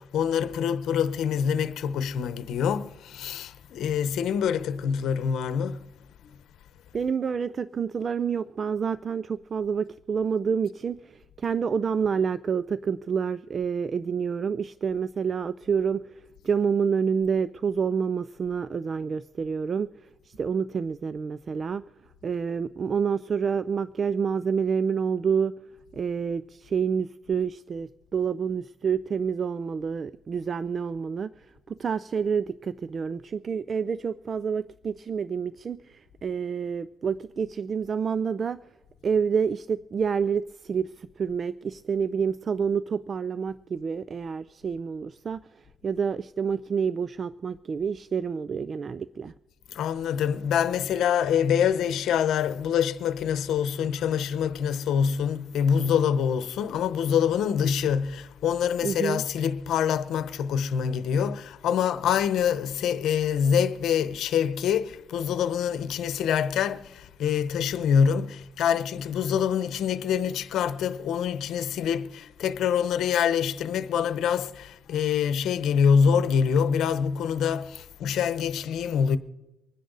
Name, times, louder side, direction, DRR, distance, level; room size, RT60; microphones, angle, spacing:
voice 1, 0.0-5.8 49.7-79.2, left 7 dB, 75° left, 0.9 m, -25 dB
voice 2, 6.9-19.9 20.3-21.8 22.2-25.5 25.9-38.6 39.0-49.3 58.8-59.2, right 6 dB, 45° right, 0.4 m, -28 dB
25.0 x 10.0 x 4.0 m
cardioid pair, 90°, 0 cm